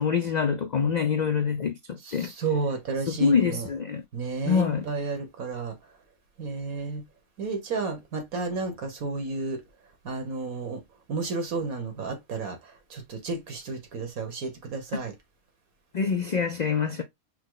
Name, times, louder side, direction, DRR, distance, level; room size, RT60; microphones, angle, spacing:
voice 1, 0.0-2.3 3.1-4.0 4.5-4.8 15.9-17.0, left 6 dB, 85° left, 0.3 m, -25 dB
voice 2, 2.0-3.7 4.1-5.7 6.4-7.0 7.4-9.6 10.0-10.8 11.1-12.6 12.9-15.1, right 4 dB, 90° right, 1.7 m, -32 dB
5.7 x 2.1 x 3.8 m
omnidirectional pair, 1.4 m